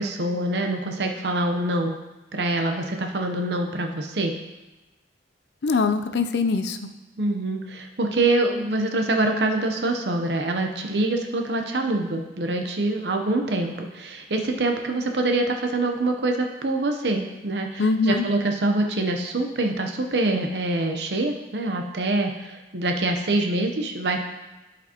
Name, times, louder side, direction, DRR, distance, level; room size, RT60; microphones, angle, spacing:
voice 1, 0.0-2.0 2.3-4.3 7.2-24.2, right 2 dB, 75° right, 3 dB, 0.8 m, -25 dB
voice 2, 5.6-6.9 17.8-18.3, left 4 dB, 80° left, 8 dB, 0.5 m, -22 dB
11.5 x 5.1 x 2.9 m, 1.1 s
head